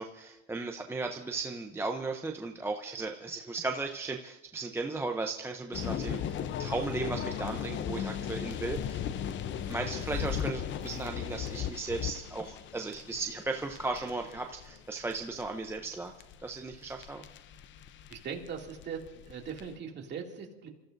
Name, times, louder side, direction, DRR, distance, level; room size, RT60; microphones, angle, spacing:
voice 1, 0.0-9.0 9.7-16.1 16.4-17.3, right 3 dB, 5° right, 4 dB, 0.6 m, -36 dB
sound 1, 5.7-19.7, left 9 dB, 35° left, 0.7 m, -37 dB
voice 2, 18.1-20.7, right 6 dB, 30° right, 1 dB, 2.4 m, -40 dB
29.0 x 14.5 x 2.6 m, 1.0 s
supercardioid pair, 125°, 35 cm